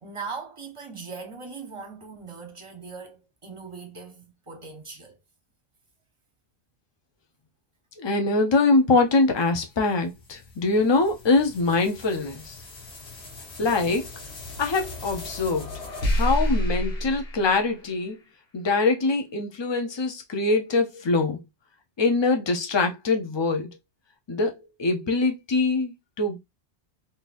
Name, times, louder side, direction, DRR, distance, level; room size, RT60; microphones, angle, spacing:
voice 1, 0.0-5.2, right 5 dB, 30° right, 0.8 m, -40 dB
voice 2, 8.0-12.6 13.6-14.1 14.6-15.7 16.1-18.2 18.5-21.4 22.0-23.7 24.3-26.4, left 3 dB, 35° left, 0.5 m, -23 dB
sound 1, 9.6-18.2, equal, 75° left, 1.4 m, -32 dB
3.8 x 2.6 x 2.5 m
omnidirectional pair, 1.1 m